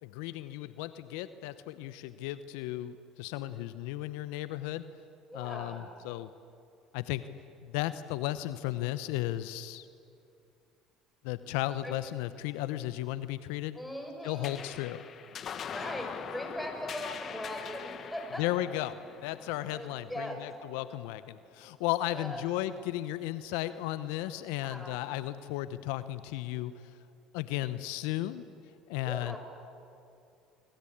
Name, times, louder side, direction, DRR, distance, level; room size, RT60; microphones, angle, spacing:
voice 1, 0.0-4.8 5.3-6.3 6.9-7.2 7.6-9.9 11.2-13.8 14.2-15.0 18.4-26.7 27.3-28.4 28.9-29.4, left 15 dB, 75° left, 13 dB, 0.8 m, -35 dB
voice 2, 5.3-5.8 11.8-12.0 13.7-14.7 15.7-18.4 19.7-20.4 22.1-22.4 24.6-25.0 29.0-29.4, equal, 5° left, 2 dB, 7.6 m, -40 dB
sound 1, 14.4-21.2, left 8 dB, 45° left, 1.5 m, -43 dB
25.0 x 24.0 x 8.7 m, 2.5 s
hypercardioid pair, 75°, 0 cm